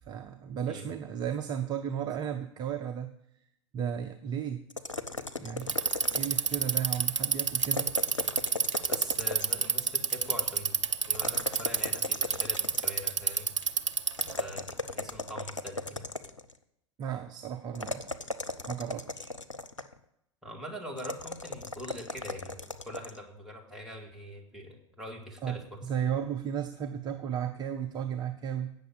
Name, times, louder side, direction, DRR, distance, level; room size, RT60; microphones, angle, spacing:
voice 1, 0.0-3.1 3.7-4.7 5.4-5.8 6.1-8.0 17.0-18.1 18.7-19.3 25.4-28.7, right 8 dB, 25° right, 7 dB, 0.6 m, -34 dB
sound 1, 4.7-6.6 7.6-9.7 11.1-13.1 14.2-16.5 17.7-20.0 21.0-23.2, left 2 dB, 90° left, 0.7 m, -37 dB
Bicycle, 5.6-14.4, right 5 dB, 75° right, 0.6 m, -28 dB
voice 2, 8.9-13.5 14.4-16.0 20.4-25.8, equal, ahead, -2 dB, 2.5 m, -43 dB
8.7 x 6.6 x 8.2 m, 0.78 s
figure-of-eight pair, 90°, 16 cm